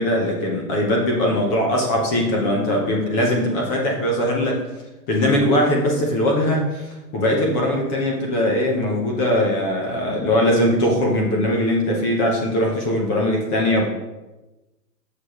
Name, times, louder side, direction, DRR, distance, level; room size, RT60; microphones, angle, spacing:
voice 1, 0.0-4.6 5.1-6.9 7.1-13.9, left 1 dB, 15° left, -1 dB, 0.7 m, -20 dB
6.7 x 6.5 x 3.0 m, 1.1 s
hypercardioid pair, 140°, 49 cm